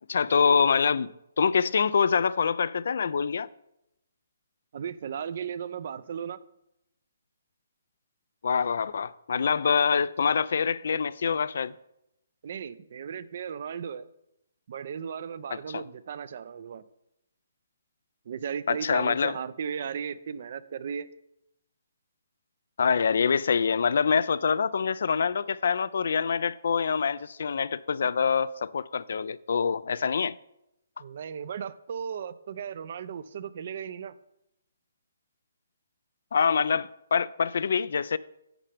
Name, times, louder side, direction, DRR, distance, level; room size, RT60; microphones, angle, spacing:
voice 1, 0.1-1.1 1.4-3.5 8.4-11.7 15.7-15.8 18.7-19.4 22.8-30.4 36.3-38.2, left 6 dB, 65° left, 0.3 m, -25 dB
voice 2, 4.7-6.4 12.4-14.1 14.7-16.8 18.3-21.1 31.0-34.1, right 7 dB, 50° right, 0.5 m, -36 dB
11.0 x 7.5 x 3.4 m
hypercardioid pair, 160°, 0 cm